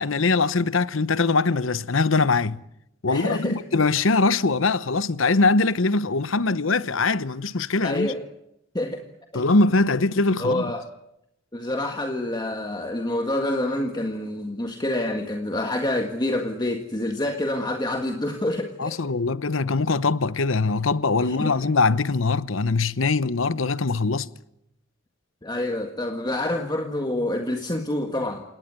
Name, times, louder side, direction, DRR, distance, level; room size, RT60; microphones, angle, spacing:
voice 1, 0.0-2.6 3.0-8.1 9.3-10.7 18.8-24.3, left 3 dB, 75° left, 0.9 m, -22 dB
voice 2, 3.1-3.6 7.8-8.2 8.7-9.0 9.3-9.4 10.4-10.8 11.5-19.0 21.2-21.6 25.4-28.4, left 1 dB, 20° left, 1.7 m, -27 dB
28.5 x 18.0 x 9.6 m
head